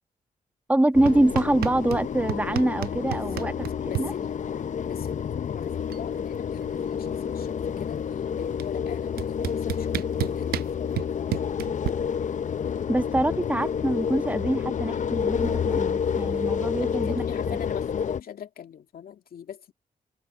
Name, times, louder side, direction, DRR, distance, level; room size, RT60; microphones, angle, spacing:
voice 1, 0.7-3.5 4.0-4.1 12.9-17.2, right 1 dB, 10° right, 1.3 m, -24 dB
sound 1, 0.9-18.2, left 7 dB, 55° left, 0.6 m, -29 dB
sound 2, 1.1-2.0 2.3-4.1 5.3-5.4 5.7-6.1 6.4-7.7 8.6-8.7 9.2-11.9, right 15 dB, 85° right, 0.4 m, -31 dB
voice 2, 3.1-3.5 3.9-4.3 4.9-11.6 16.8-19.7, left 9 dB, 75° left, 2.2 m, -41 dB
supercardioid pair, 55°, 16 cm